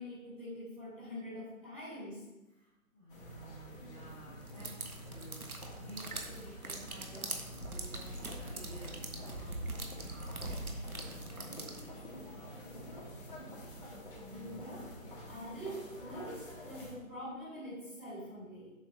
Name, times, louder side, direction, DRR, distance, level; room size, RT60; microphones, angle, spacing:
voice 1, 0.0-2.2 14.3-14.8 15.3-16.4 16.6-18.7, equal, 5° right, -12 dB, 1.7 m, -44 dB
voice 2, 2.5-10.8 11.2-13.6 14.1-14.8 15.3-15.6, right 1 dB, 10° left, -15 dB, 1.3 m, -54 dB
sound 1, 3.1-16.9, equal, 35° left, 1.8 m, -48 dB
sound 2, 4.5-11.9, right 2 dB, 80° right, 1.4 m, -42 dB
7.5 x 6.4 x 3.3 m, 1.0 s
figure-of-eight pair, 160°, 43 cm